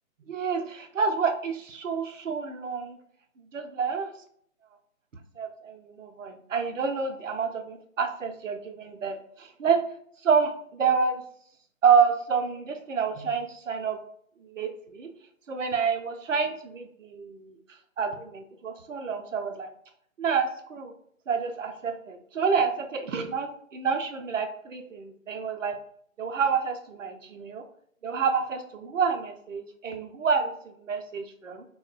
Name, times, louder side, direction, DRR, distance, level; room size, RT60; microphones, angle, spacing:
voice 1, 0.3-3.0 3.5-4.1 5.4-9.8 10.2-11.2 11.8-14.0 14.4-15.1 15.5-17.6 18.0-19.7 20.2-20.9 21.3-25.7 26.2-27.6 28.0-31.7, right 6 dB, 65° right, 6 dB, 0.6 m, -28 dB
3.6 x 2.1 x 2.4 m, 0.66 s
figure-of-eight pair, 140°, 42 cm